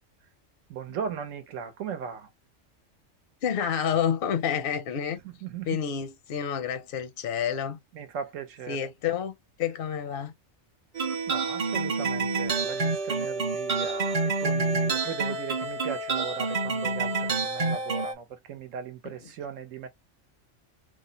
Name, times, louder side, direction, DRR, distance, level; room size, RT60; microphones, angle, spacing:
voice 1, 0.7-2.3 5.2-5.8 7.9-8.9 11.3-19.9, right 7 dB, 85° right, 1.1 m, -38 dB
voice 2, 3.4-5.2 5.7-7.8 8.7-10.3 19.0-19.3, left 8 dB, 60° left, 0.6 m, -29 dB
sound 1, 10.9-18.1, right 3 dB, 40° right, 0.6 m, -28 dB
3.1 x 2.0 x 3.9 m
omnidirectional pair, 1.3 m